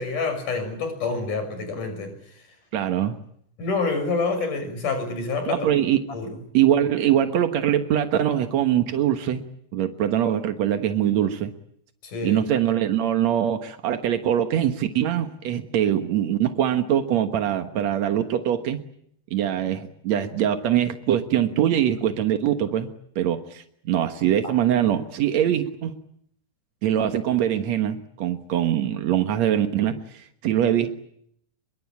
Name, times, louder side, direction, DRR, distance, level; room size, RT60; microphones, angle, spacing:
voice 1, 0.0-2.1 3.6-5.7 6.1-6.4 12.0-12.4 24.4-24.5, left 4 dB, 45° left, 8 dB, 7.6 m, -27 dB
voice 2, 2.7-3.2 5.5-6.0 6.5-9.4 9.7-11.5 12.2-18.8 19.3-22.9 23.1-25.9 26.8-30.9, right 10 dB, 75° right, 8 dB, 1.6 m, -23 dB
26.0 x 23.0 x 8.6 m, 0.69 s
omnidirectional pair, 5.1 m